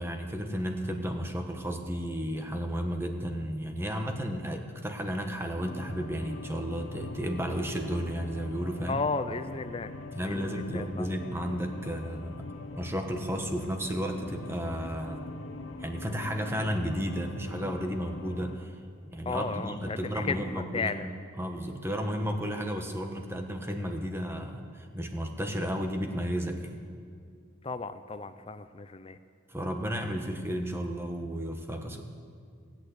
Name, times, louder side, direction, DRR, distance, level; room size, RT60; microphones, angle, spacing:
voice 1, 0.0-9.0 10.1-12.5 12.8-15.2 15.8-18.7 19.1-21.1 21.4-26.8 29.5-32.0, equal, 10° right, 5 dB, 1.0 m, -33 dB
sound 1, 5.5-18.6, left 3 dB, 80° left, 1.0 m, -42 dB
voice 2, 8.9-9.9 10.2-11.1 19.3-21.1 27.6-29.2, left 4 dB, 25° left, 11 dB, 0.5 m, -34 dB
17.5 x 8.6 x 8.1 m, 2.3 s
head